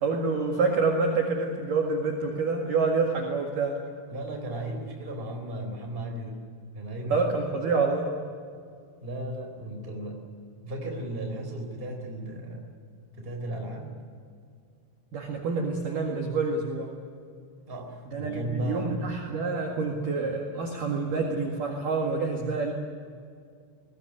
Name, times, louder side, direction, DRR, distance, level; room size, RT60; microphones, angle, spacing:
voice 1, 0.0-3.8 7.1-8.1 15.1-16.9 18.1-22.7, right 4 dB, 55° right, 0 dB, 2.8 m, -27 dB
voice 2, 4.1-6.4 6.7-7.5 9.0-10.2 10.6-12.7 13.2-14.0 17.7-19.0, right 1 dB, 10° right, 2 dB, 3.3 m, -35 dB
22.0 x 18.5 x 9.9 m, 2.3 s
omnidirectional pair, 5.9 m